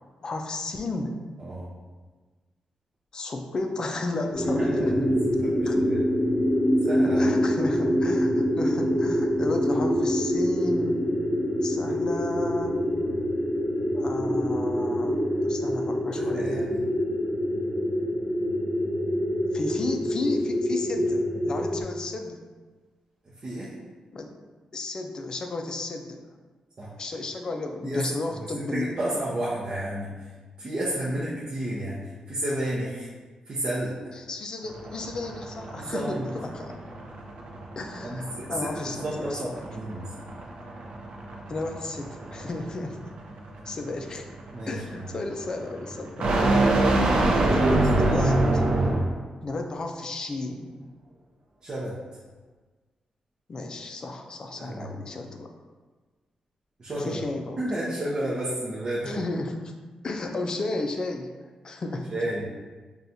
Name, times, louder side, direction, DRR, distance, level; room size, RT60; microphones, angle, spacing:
voice 1, 0.2-1.2 3.1-4.9 5.7-5.8 7.1-11.1 11.6-12.8 13.9-15.2 15.4-16.6 19.5-22.4 24.1-24.3 24.7-26.4 27.0-28.9 31.1-31.2 34.2-36.8 37.8-39.5 41.5-43.1 43.7-44.3 44.7-46.3 47.5-48.6 49.4-50.9 53.5-55.5 56.9-57.6 59.0-59.7 60.0-61.3 61.6-62.1, left 2 dB, 35° left, 4 dB, 0.4 m, -33 dB
voice 2, 1.4-1.7 4.5-6.0 6.9-7.3 16.1-16.8 23.3-23.7 26.8-26.9 27.8-30.3 30.6-33.1 33.5-34.1 35.8-36.3 38.0-40.1 44.5-45.1 47.2-47.6 48.0-48.3 51.6-52.0 54.6-55.0 56.8-57.2 57.6-59.2 62.1-62.5, right 1 dB, 40° right, -8 dB, 0.6 m, -32 dB
sound 1, 4.3-21.8, equal, ahead, 1.4 m, -25 dB
sound 2, 34.6-49.2, right 2 dB, 80° right, 0.5 m, -26 dB
5.7 x 2.3 x 2.6 m, 1.3 s
wide cardioid pair, 140°, 2 cm